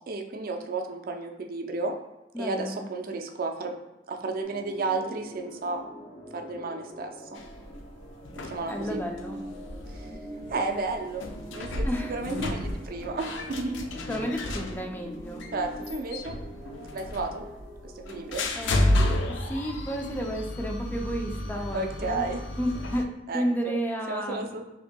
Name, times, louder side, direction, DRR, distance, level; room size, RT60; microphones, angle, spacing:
voice 1, 0.1-1.9 2.4-3.8 4.1-5.8 6.3-7.4 8.4-9.0 9.9-10.1 10.5-11.3 11.5-13.9 15.5-16.4 16.9-17.4 17.8-18.5 21.7-22.4 23.3-23.8 24.1-24.6, right 3 dB, 50° right, 3 dB, 0.4 m, -32 dB
voice 2, 2.3-2.8 8.7-9.4 11.8-12.1 14.1-15.5 18.5-19.2 19.5-22.2 22.6-23.0 23.3-24.5, equal, 10° left, 2 dB, 0.4 m, -32 dB
sound 1, 4.4-18.8, right 1 dB, 65° left, 1.1 m, -44 dB
sound 2, 7.4-23.1, left 1 dB, 90° left, 0.5 m, -32 dB
5.2 x 2.7 x 2.2 m, 1.0 s
head